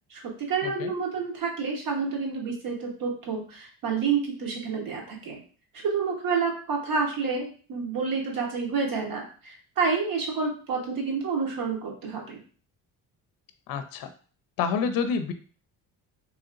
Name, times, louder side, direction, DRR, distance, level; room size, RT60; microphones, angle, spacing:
voice 1, 0.1-5.4 5.8-12.4, right 5 dB, 60° right, -1 dB, 1.1 m, -29 dB
voice 2, 13.7-14.1 14.6-15.3, left 6 dB, 65° left, 9 dB, 0.5 m, -28 dB
3.0 x 2.8 x 2.4 m, 0.41 s
supercardioid pair, 75°, 38 cm